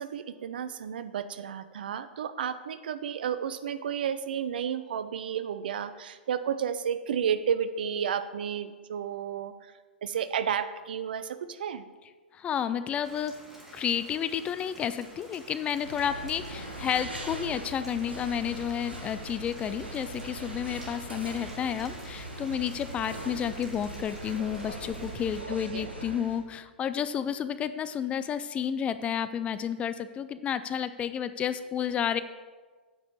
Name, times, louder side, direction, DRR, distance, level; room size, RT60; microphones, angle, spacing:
voice 1, 0.0-9.7 10.0-11.8 25.5-25.9, right 8 dB, 60° right, 12 dB, 0.6 m, -32 dB
voice 2, 12.3-13.4 13.7-32.2, left 8 dB, 20° left, 13 dB, 0.4 m, -31 dB
Rain, 13.0-25.4, equal, 5° right, 2.7 m, -50 dB
sound 1, 15.7-26.4, right 1 dB, 90° right, 1.5 m, -40 dB
8.9 x 5.0 x 7.0 m, 1.4 s
figure-of-eight pair, 105°, 6 cm